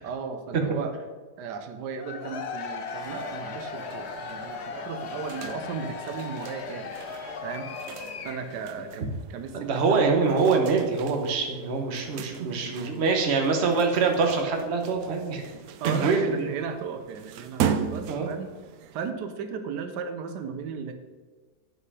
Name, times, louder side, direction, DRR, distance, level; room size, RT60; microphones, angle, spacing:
voice 1, 0.0-1.0 1.4-6.9 7.4-7.8 8.2-10.0 11.4-11.6 12.6-12.9 15.8-18.5 18.9-20.9, right 6 dB, 85° right, 7 dB, 1.3 m, -36 dB
Cheering / Crowd, 1.9-8.7, left 5 dB, 60° left, 0.7 m, -37 dB
sound 1, 3.0-19.1, right 8 dB, 70° right, 1.0 m, -38 dB
voice 2, 9.5-15.6 15.9-16.5 18.1-18.3, right 4 dB, 45° right, 3 dB, 1.2 m, -24 dB
7.8 x 5.6 x 4.8 m, 1.3 s
omnidirectional pair, 1.8 m